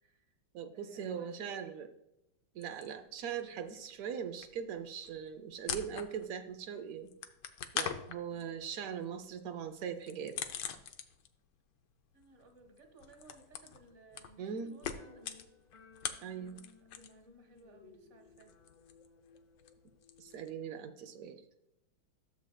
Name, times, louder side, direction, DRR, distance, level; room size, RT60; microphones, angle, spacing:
voice 1, 0.0-0.4 0.7-1.8 12.1-15.3 16.5-18.5, right 3 dB, 40° right, 6 dB, 1.3 m, -60 dB
voice 2, 0.5-1.9 2.5-7.1 7.7-10.4 14.4-14.8 16.2-16.6 20.2-21.4, right 7 dB, 85° right, 7 dB, 0.7 m, -40 dB
sound 1, 2.6-3.5 3.7-6.5 6.8-11.5 11.7-17.3 17.5-20.5, left 8 dB, 70° left, 1.2 m, -43 dB
sound 2, 15.0-20.5, left 4 dB, 40° left, 0.6 m, -61 dB
13.0 x 7.2 x 2.2 m, 0.88 s
omnidirectional pair, 2.2 m